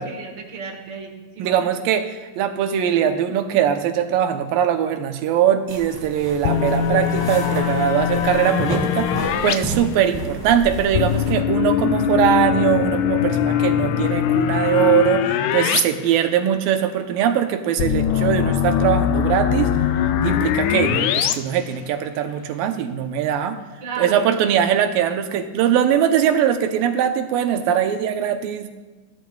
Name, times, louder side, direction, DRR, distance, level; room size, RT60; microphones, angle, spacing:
voice 1, 0.0-1.7 7.3-7.7 23.8-24.3, right 5 dB, 45° right, 1 dB, 1.5 m, -33 dB
voice 2, 1.4-19.7 20.0-23.6 24.0-28.7, right 9 dB, 90° right, 7 dB, 2.6 m, -21 dB
sound 1, 5.7-11.3, right 2 dB, 10° right, 1.2 m, -32 dB
sound 2, 6.4-9.6 10.9-15.8 16.1-16.2 17.8-21.3, left 9 dB, 90° left, 1.6 m, -21 dB
17.5 x 11.5 x 2.4 m, 1.2 s
omnidirectional pair, 4.0 m